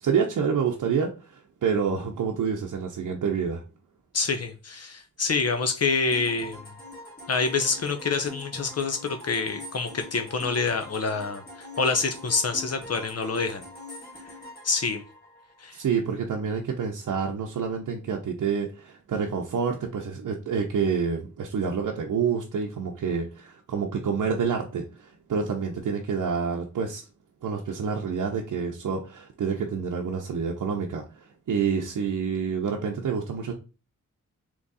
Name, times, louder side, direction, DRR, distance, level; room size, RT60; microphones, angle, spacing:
voice 1, 0.0-3.6 15.7-27.0 27.4-33.5, right 6 dB, 85° right, 0.7 m, -28 dB
voice 2, 4.1-6.7 7.3-13.6 14.3-14.4 14.6-15.0 15.6-15.8, left 4 dB, 55° left, 0.6 m, -27 dB
sound 1, 6.1-15.8, left 1 dB, 30° left, 2.2 m, -44 dB
3.6 x 3.0 x 4.0 m
cardioid pair, 75°, 30 cm